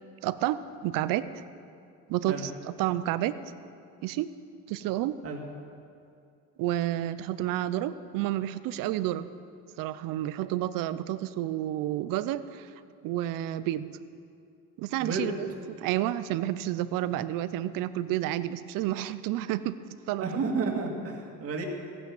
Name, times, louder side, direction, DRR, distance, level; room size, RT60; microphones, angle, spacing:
voice 1, 0.2-1.3 2.1-3.3 4.0-4.3 4.7-5.2 6.6-9.3 9.8-12.7 13.0-13.9 14.8-15.5 15.8-19.8 20.1-20.2, right 13 dB, 80° right, 14 dB, 0.7 m, -30 dB
voice 2, 15.0-15.4 20.2-21.7, right 4 dB, 45° right, 1 dB, 2.2 m, -31 dB
15.5 x 9.8 x 7.1 m, 2.5 s
cardioid pair, 130°, 33 cm